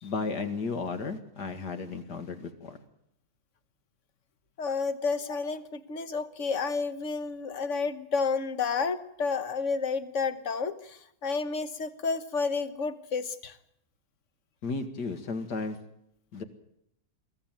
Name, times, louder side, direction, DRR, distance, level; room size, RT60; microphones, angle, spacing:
voice 1, 0.0-2.8 14.6-15.8 16.3-16.4, left 4 dB, 70° left, 8 dB, 2.5 m, -34 dB
voice 2, 4.6-13.6, left 4 dB, 50° left, 11 dB, 1.4 m, -31 dB
22.5 x 15.0 x 9.1 m, 0.75 s
omnidirectional pair, 1.9 m